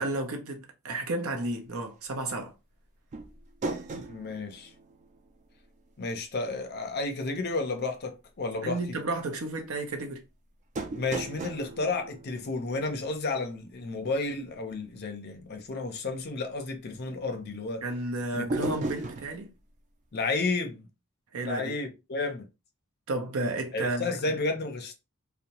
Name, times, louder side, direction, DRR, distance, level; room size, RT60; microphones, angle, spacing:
voice 1, 0.0-2.5 8.6-10.2 17.8-19.5 21.3-21.7 23.1-24.2, right 2 dB, 65° right, 0.7 m, -32 dB
sound 1, 3.1-5.8 6.0-6.1 10.8-13.3 18.5-19.4, right 2 dB, 35° right, 0.3 m, -36 dB
voice 2, 3.9-4.7 6.0-9.0 11.0-17.8 18.3-18.7 20.1-20.9 21.4-22.5 23.7-24.9, left 3 dB, 45° left, 0.5 m, -32 dB
2.7 x 2.1 x 2.8 m
head